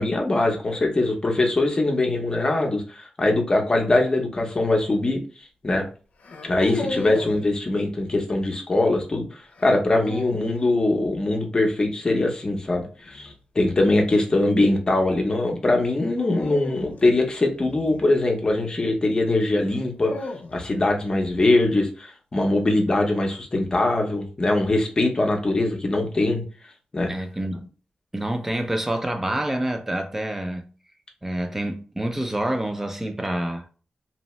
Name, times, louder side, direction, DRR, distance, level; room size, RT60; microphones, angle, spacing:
voice 1, 0.0-5.2 5.6-5.9 6.4-26.4 26.9-27.1, left 2 dB, 30° left, 0.6 m, -22 dB
sound 1, 4.4-4.7 6.2-7.5 9.6-10.6 13.0-13.4 16.2-18.5 19.6-20.9, left 3 dB, 70° left, 0.4 m, -35 dB
voice 2, 27.1-27.7 28.1-30.7 31.2-33.6, right 1 dB, 15° right, 0.4 m, -27 dB
2.7 x 2.1 x 3.0 m
wide cardioid pair, 145°, 3 cm